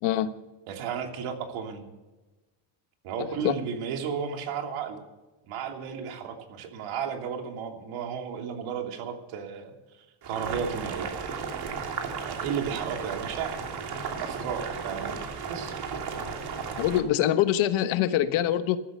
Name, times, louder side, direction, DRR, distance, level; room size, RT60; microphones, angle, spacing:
voice 1, 0.7-1.8 3.0-5.0 5.5-11.1 12.3-13.6 14.1-15.2 15.5-15.8, right 7 dB, 90° right, 4 dB, 3.1 m, -34 dB
Boiling, 10.2-17.0, right 5 dB, 50° right, 2.9 m, -34 dB
voice 2, 16.8-18.8, left 12 dB, 85° left, 11 dB, 1.3 m, -24 dB
14.5 x 13.5 x 6.7 m, 1.1 s
cardioid pair, 145°, 47 cm